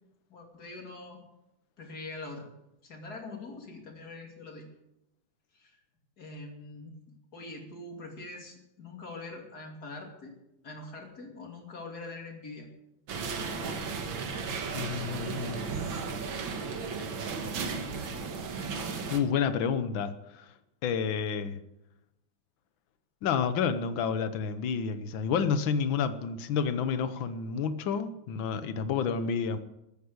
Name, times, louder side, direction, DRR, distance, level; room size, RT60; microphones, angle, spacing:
voice 1, 0.3-1.2 1.8-2.5 2.8-4.7 5.5-5.8 6.2-7.0 7.3-10.4 10.6-12.7 13.4-13.8, left 2 dB, 50° left, 2 dB, 3.2 m, -43 dB
sound 1, 13.1-19.2, right 5 dB, 80° right, 2.2 m, -35 dB
voice 2, 14.7-15.7 19.1-20.5 20.8-21.6 23.2-29.6, left 6 dB, 80° left, 11 dB, 1.7 m, -30 dB
14.5 x 9.4 x 8.1 m, 0.89 s
omnidirectional pair, 2.1 m